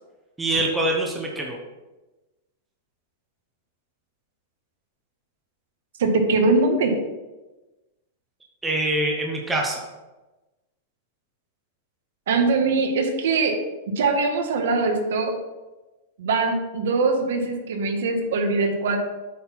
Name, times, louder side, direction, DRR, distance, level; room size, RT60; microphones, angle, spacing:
voice 1, 0.4-1.6 8.6-9.9, right 1 dB, 5° right, -1 dB, 0.8 m, -24 dB
voice 2, 6.0-6.9 12.3-13.6 13.9-15.3 16.2-19.0, right 3 dB, 65° right, 4 dB, 1.6 m, -22 dB
8.3 x 4.3 x 5.8 m, 1.1 s
supercardioid pair, 180°, 0 cm